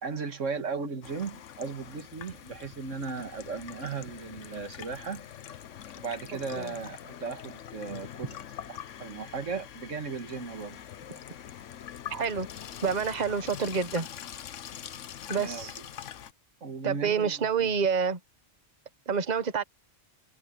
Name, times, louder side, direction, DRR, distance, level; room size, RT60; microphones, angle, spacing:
voice 1, 0.0-5.2 6.0-8.3 8.7-10.8 15.3-15.7 16.6-17.7, right 5 dB, 85° right, 2.1 m, -36 dB
Water tap faucet / Sink (filling or washing), 1.0-16.3, left 10 dB, 80° left, 1.2 m, -44 dB
voice 2, 12.1-12.5 12.8-14.1 15.3-15.7 16.8-18.2 19.1-19.6, right 6 dB, 35° right, 1.3 m, -28 dB
omnidirectional pair, 1.3 m